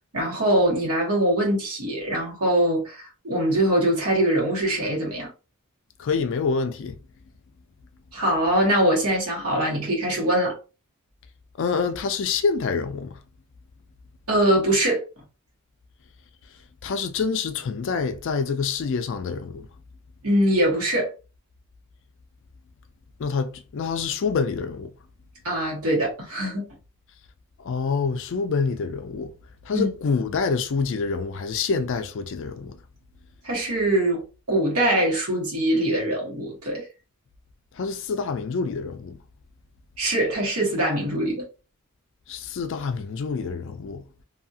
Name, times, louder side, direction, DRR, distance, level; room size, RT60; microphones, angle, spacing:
voice 1, 0.1-5.3 8.1-10.6 14.3-15.0 20.2-21.1 25.4-26.7 29.7-29.9 33.4-36.9 40.0-41.4, right 1 dB, 80° right, 1.4 m, -23 dB
voice 2, 6.0-7.0 11.6-13.1 16.8-19.7 23.2-24.9 27.6-29.3 29.7-32.7 37.8-39.1 42.3-44.0, left 5 dB, 55° left, 0.4 m, -26 dB
2.7 x 2.4 x 2.7 m
head